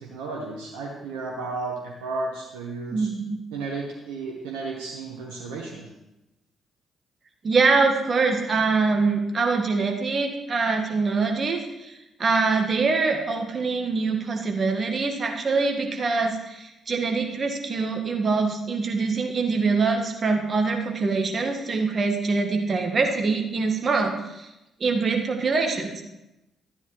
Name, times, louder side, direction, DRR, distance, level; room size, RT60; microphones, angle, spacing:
voice 1, 0.0-3.1 3.5-5.9, right 3 dB, 80° right, -2 dB, 1.1 m, -33 dB
voice 2, 2.9-3.4 7.4-24.5 24.8-26.0, right 4 dB, 45° right, 3 dB, 1.6 m, -24 dB
13.0 x 9.7 x 3.2 m, 0.94 s
hypercardioid pair, 45°, 0 cm